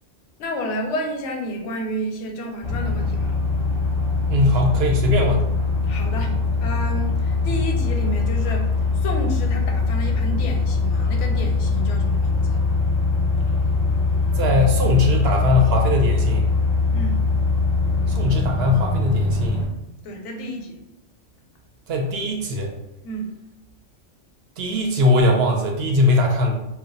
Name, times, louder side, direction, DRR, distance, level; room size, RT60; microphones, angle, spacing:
voice 1, 0.4-3.3 5.9-8.7 9.0-12.6 16.9-17.2 20.0-20.8 23.0-23.4, equal, 80° left, 3 dB, 0.9 m, -30 dB
sound 1, 2.6-19.7, left 3 dB, 35° left, 0.5 m, -22 dB
voice 2, 4.3-5.4 14.4-16.4 18.1-19.6 21.9-22.7 24.6-26.6, left 2 dB, 65° right, 1 dB, 0.7 m, -20 dB
2.2 x 2.1 x 3.8 m, 0.88 s
omnidirectional pair, 1.2 m